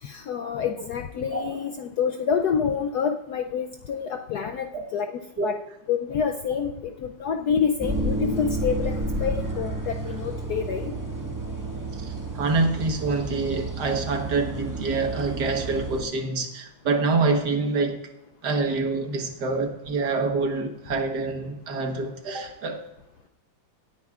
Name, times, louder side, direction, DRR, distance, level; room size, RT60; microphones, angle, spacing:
voice 1, 0.0-5.5 5.9-10.9, left 7 dB, 70° left, 5 dB, 0.9 m, -27 dB
sound 1, 7.8-16.0, right 1 dB, 10° right, 1.3 m, -31 dB
voice 2, 11.9-18.0 18.4-22.8, right 3 dB, 60° right, 4 dB, 1.8 m, -26 dB
19.0 x 9.3 x 2.4 m, 0.88 s
omnidirectional pair, 2.1 m